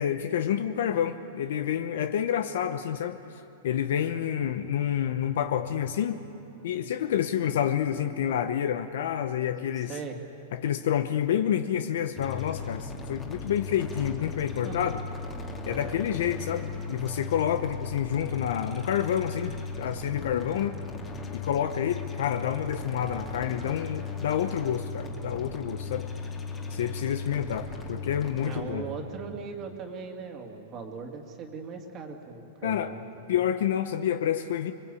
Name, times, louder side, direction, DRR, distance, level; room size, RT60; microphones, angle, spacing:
voice 1, 0.0-6.2 6.6-10.0 10.5-15.0 15.7-20.8 21.3-26.1 26.7-28.8 32.6-32.9 33.3-34.7, left 9 dB, 70° left, 9 dB, 0.9 m, -28 dB
voice 2, 9.8-10.2 14.5-14.9 15.6-16.0 26.6-26.9 28.4-33.4, right 4 dB, 25° right, 3 dB, 2.3 m, -39 dB
sound 1, 12.2-28.6, left 3 dB, 15° left, 2.2 m, -37 dB
25.5 x 22.5 x 8.5 m, 2.8 s
supercardioid pair, 165°, 0 cm